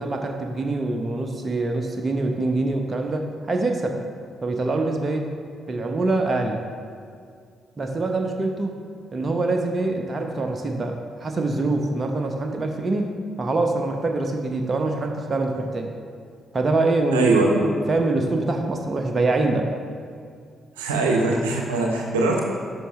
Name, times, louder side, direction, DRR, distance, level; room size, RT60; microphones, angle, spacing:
voice 1, 0.0-4.0 4.4-5.3 5.7-6.6 7.8-8.8 9.1-15.9 16.5-19.7, right 2 dB, 35° right, 3 dB, 0.9 m, -24 dB
voice 2, 17.1-17.6 20.8-22.4, right 2 dB, 80° right, 0 dB, 0.9 m, -21 dB
12.5 x 5.7 x 3.2 m, 2.2 s
figure-of-eight pair, 40°, 0 cm